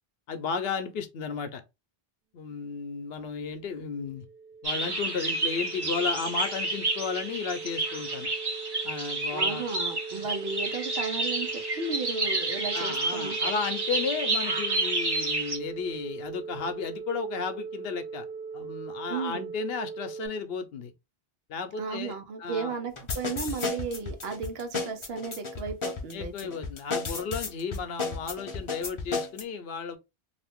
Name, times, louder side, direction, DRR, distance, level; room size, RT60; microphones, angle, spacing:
voice 1, 0.3-1.6 2.3-4.3 4.6-8.3 8.8-9.6 10.1-10.3 12.7-18.2 18.5-20.9 21.5-22.1 22.4-22.7 26.1-30.0, left 5 dB, 75° left, 0.8 m, -34 dB
sound 1, 3.3-20.3, right 5 dB, 50° right, 0.4 m, -40 dB
sound 2, 4.6-15.6, right 2 dB, 25° right, 0.7 m, -30 dB
voice 2, 9.3-13.5 19.1-19.5 21.8-26.5, right 4 dB, 80° right, 1.0 m, -34 dB
sound 3, 23.0-29.4, left 3 dB, 35° left, 0.6 m, -33 dB
2.6 x 2.5 x 3.5 m
omnidirectional pair, 1.0 m